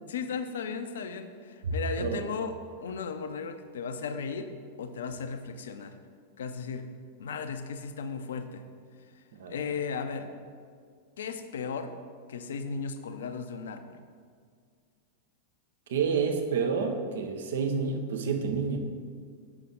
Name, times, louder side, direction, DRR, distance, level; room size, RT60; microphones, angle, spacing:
voice 1, 0.1-2.5 2.8-4.5 4.8-6.0 6.4-6.9 7.2-8.6 9.5-10.3 11.2-11.9 12.3-14.0, left 5 dB, 60° left, 8 dB, 0.5 m, -35 dB
voice 2, 1.6-2.3 9.3-9.6 15.9-18.8, right 5 dB, 60° right, 5 dB, 0.7 m, -29 dB
7.0 x 5.7 x 3.7 m, 2.1 s
figure-of-eight pair, 90°, 0 cm